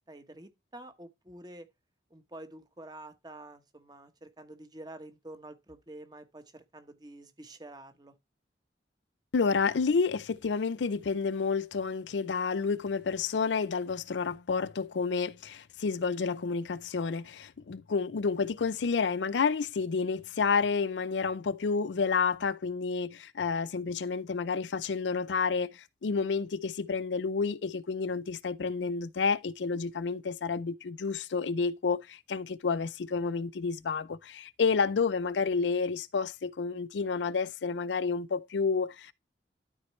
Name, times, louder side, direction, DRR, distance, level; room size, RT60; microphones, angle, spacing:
voice 1, 0.0-1.7 2.1-8.1, right 1 dB, 25° right, 1.1 m, -48 dB
voice 2, 9.3-39.1, left 5 dB, 85° left, 0.5 m, -30 dB
12.5 x 4.5 x 3.1 m
head